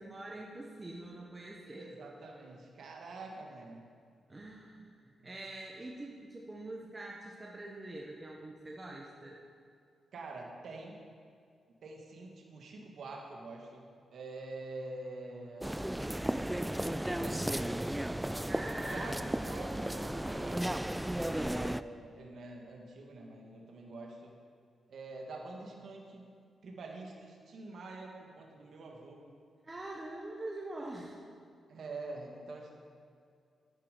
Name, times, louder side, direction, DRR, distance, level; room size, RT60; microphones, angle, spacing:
voice 1, 0.0-1.9 4.3-9.4 18.5-19.4 29.6-31.2, right 2 dB, 20° right, -2 dB, 1.2 m, -44 dB
voice 2, 1.7-3.9 5.2-5.3 10.1-11.0 11.8-15.8 17.0-17.6 18.8-19.2 19.4-20.8 21.2-24.4 24.9-26.3 26.6-29.2 31.7-32.8, right 2 dB, 70° right, 0 dB, 1.8 m, -46 dB
sound 1, 15.6-21.8, right 1 dB, 5° right, 0.3 m, -34 dB
10.5 x 10.0 x 5.2 m, 2.3 s
cardioid pair, 85°, 0 cm